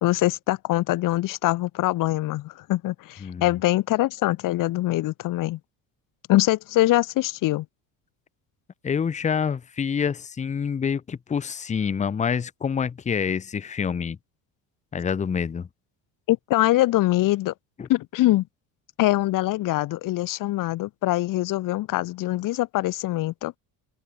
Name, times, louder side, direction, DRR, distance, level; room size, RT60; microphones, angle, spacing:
voice 1, 0.0-5.6 6.3-7.7 16.3-17.5 17.9-18.5 19.0-23.5, left 17 dB, 60° left, 2.0 m, -23 dB
voice 2, 8.8-14.2 14.9-15.7 17.8-17.9, left 6 dB, 20° left, 0.8 m, -27 dB
open air
cardioid pair, 140°, 37 cm